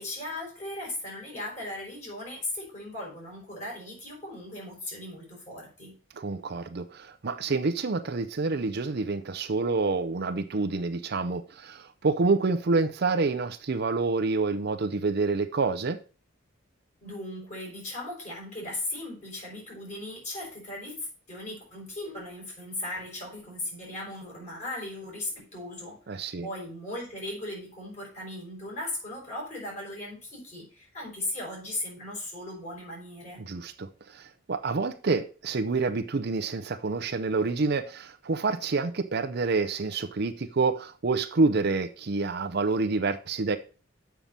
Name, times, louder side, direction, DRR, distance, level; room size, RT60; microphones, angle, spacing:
voice 1, 0.0-6.0 17.0-33.4, left 1 dB, 35° left, 5.1 m, -37 dB
voice 2, 6.1-16.0 26.1-26.5 33.4-43.6, right 3 dB, 55° right, 0.6 m, -28 dB
7.3 x 5.8 x 5.2 m
head